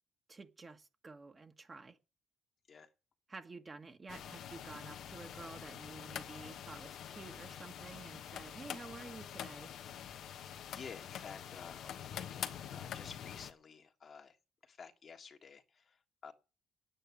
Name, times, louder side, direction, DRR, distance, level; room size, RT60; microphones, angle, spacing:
voice 1, 0.3-2.0 3.3-9.7, right 3 dB, 30° right, 1.6 m, -51 dB
sound 1, 4.1-13.5, left 9 dB, 75° left, 1.2 m, -46 dB
voice 2, 10.7-14.4 14.6-16.3, left 6 dB, 50° left, 1.7 m, -52 dB
9.6 x 9.0 x 8.7 m
cardioid pair, 90°, 0 cm